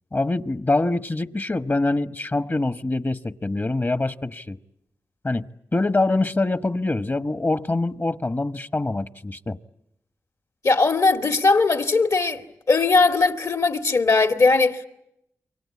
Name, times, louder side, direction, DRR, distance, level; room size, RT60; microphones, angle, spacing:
voice 1, 0.1-4.6 5.2-5.5 5.7-9.6, left 2 dB, 30° left, 1.2 m, -24 dB
voice 2, 10.6-12.4 12.7-14.9, left 3 dB, 60° left, 2.2 m, -19 dB
28.0 x 24.0 x 8.5 m
cardioid pair, 45°, 6 cm